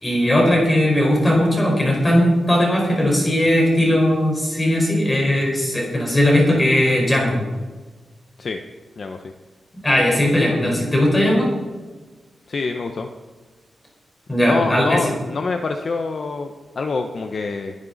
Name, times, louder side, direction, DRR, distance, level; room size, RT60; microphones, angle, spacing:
voice 1, 0.0-7.4 9.8-11.5 14.3-15.0, left 1 dB, 10° left, -2 dB, 4.7 m, -18 dB
voice 2, 12.5-13.1 14.5-17.7, left 4 dB, 40° left, 5 dB, 0.9 m, -26 dB
21.5 x 11.0 x 4.1 m, 1.3 s
wide cardioid pair, 180°, 0 cm